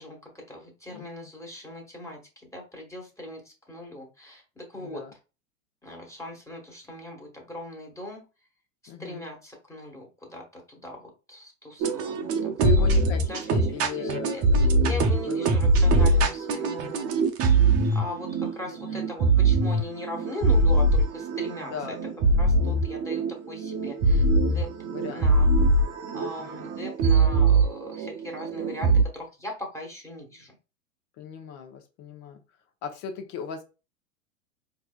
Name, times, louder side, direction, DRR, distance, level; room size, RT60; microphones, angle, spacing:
voice 1, 0.0-5.0 5.8-8.3 8.8-12.5 12.8-12.9 13.3-17.2 17.9-22.0 22.4-24.7 25.1-25.5 26.1-30.6, left 1 dB, 5° left, 1.6 m, -40 dB
voice 2, 4.7-5.1 8.9-9.2 12.5-14.7 15.2-15.6 18.7-19.1 21.6-22.3 24.9-25.5 25.9-26.7 31.2-32.4 32.8-33.6, left 7 dB, 45° left, 1.0 m, -37 dB
sound 1, 11.8-29.0, right 2 dB, 35° right, 0.7 m, -22 dB
4.5 x 2.8 x 2.4 m
hypercardioid pair, 100°, 40 cm